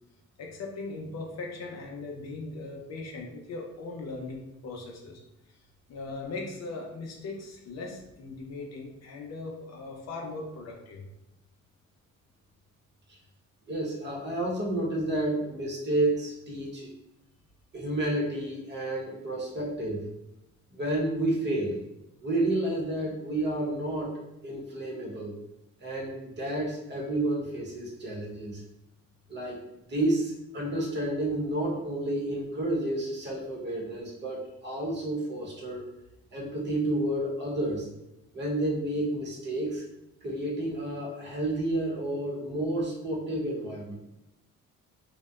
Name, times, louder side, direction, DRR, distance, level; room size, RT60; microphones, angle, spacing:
voice 1, 0.4-5.2 5.9-11.0, left 3 dB, 60° left, 0 dB, 0.6 m, -39 dB
voice 2, 13.7-16.9 17.7-20.1 20.7-21.8 22.2-25.4 25.8-28.6 29.3-29.6 29.9-35.8 36.3-37.9 38.3-39.8 40.2-43.9, right 1 dB, 35° right, -2 dB, 0.8 m, -30 dB
2.7 x 2.1 x 2.3 m, 0.90 s
cardioid pair, 90°, 30 cm